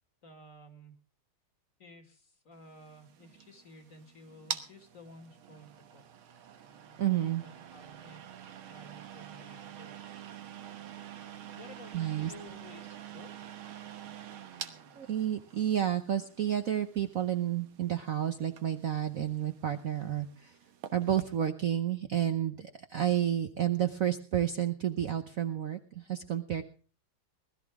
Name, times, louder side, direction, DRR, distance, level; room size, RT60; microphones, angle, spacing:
voice 1, 0.2-0.9 1.8-6.0 7.3-8.3 8.7-10.5 11.5-13.7, left 1 dB, 40° left, 7 dB, 2.4 m, -54 dB
sound 1, 2.7-21.4, right 9 dB, 85° right, 2.1 m, -47 dB
voice 2, 7.0-7.4 11.9-12.3 15.0-20.5 20.9-26.6, right 10 dB, 55° right, 8 dB, 1.0 m, -30 dB
20.5 x 13.5 x 3.5 m, 0.37 s
omnidirectional pair, 2.2 m